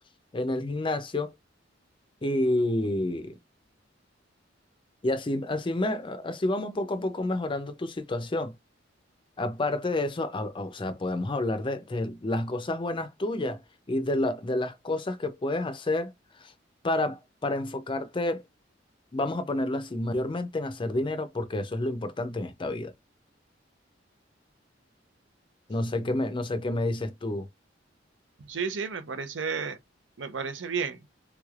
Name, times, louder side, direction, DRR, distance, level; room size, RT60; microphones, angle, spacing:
voice 1, 0.3-1.3 2.2-3.4 5.0-8.6 9.4-13.6 13.9-16.5 16.8-18.4 19.1-22.9 25.7-27.5, left 2 dB, 25° left, 0.5 m, -29 dB
voice 2, 28.4-29.8 30.2-31.0, right 5 dB, 75° right, 0.6 m, -32 dB
3.5 x 3.2 x 2.4 m
head